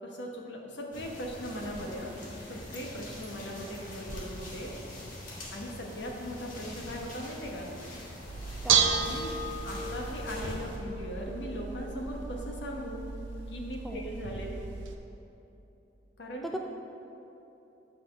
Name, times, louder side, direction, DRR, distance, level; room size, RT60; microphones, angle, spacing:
voice 1, 0.0-2.1 2.5-4.7 5.5-7.7 9.0-9.3 9.6-13.0 13.5-14.5 16.2-16.5, equal, 65° left, 0 dB, 1.2 m, -39 dB
sound 1, 0.9-10.8, left 1 dB, 45° left, 1.7 m, -44 dB
Bell / Dishes pots and pans, 8.3-14.9, right 6 dB, 80° right, 0.7 m, -32 dB
voice 2, 8.6-9.0 13.8-14.1 16.4-16.6, equal, ahead, 1 dB, 0.3 m, -38 dB
9.3 x 4.2 x 6.0 m, 3.0 s
head